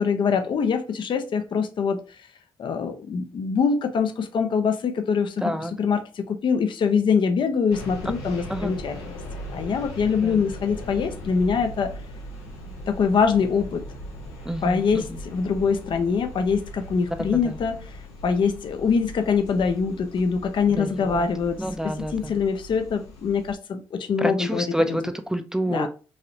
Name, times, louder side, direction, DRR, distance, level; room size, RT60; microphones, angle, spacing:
voice 1, 0.0-2.0 2.6-5.4 5.8-8.9 9.5-11.9 12.9-13.8 14.6-17.8 18.2-21.6 21.8-24.6 25.7-25.9, left 5 dB, 50° left, 0.5 m, -24 dB
voice 2, 5.4-5.7 8.5-8.7 10.2-10.4 14.5-15.2 17.2-17.6 20.8-21.3 21.6-22.3 24.2-25.9, equal, 5° right, 0.4 m, -28 dB
sound 1, 7.7-23.6, left 1 dB, 85° left, 0.8 m, -39 dB
3.2 x 2.7 x 2.6 m
hypercardioid pair, 45°, 10 cm